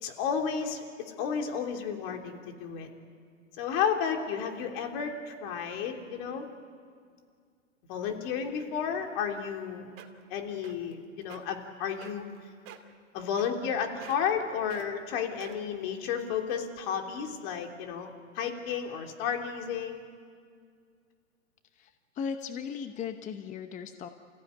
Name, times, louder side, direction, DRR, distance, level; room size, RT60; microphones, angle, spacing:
voice 1, 0.0-2.9 3.6-6.5 7.9-9.9 10.3-12.2 13.1-20.0, left 7 dB, 45° left, 3 dB, 3.4 m, -32 dB
sound 1, 9.6-9.7 10.0-10.3 10.6-10.9 11.2-11.4 12.0-12.4 12.7-12.9 13.4-13.7 14.0-14.4 14.7-14.9 15.4-15.8 16.4-16.5, right 11 dB, 35° right, 2.3 m, -47 dB
voice 2, 21.7-24.1, left 6 dB, 20° left, 8 dB, 0.9 m, -37 dB
28.5 x 15.5 x 9.6 m, 2.1 s
hypercardioid pair, 130°, 39 cm